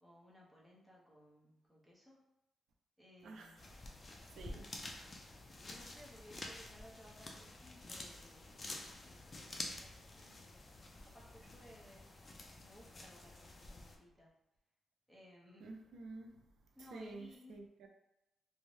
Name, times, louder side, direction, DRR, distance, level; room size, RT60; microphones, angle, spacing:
voice 1, 0.0-2.2 3.0-3.7 5.6-8.7 9.0-12.1 12.6-14.3 15.1-15.7 16.7-17.5, equal, ahead, -5 dB, 0.7 m, -60 dB
sound 1, 3.6-14.0, left 2 dB, 30° left, 0.4 m, -50 dB
voice 2, 4.4-4.7 15.6-16.4 16.9-17.9, right 3 dB, 85° right, 2 dB, 0.4 m, -50 dB
2.6 x 2.1 x 3.1 m, 0.93 s
cardioid pair, 120°, 0 cm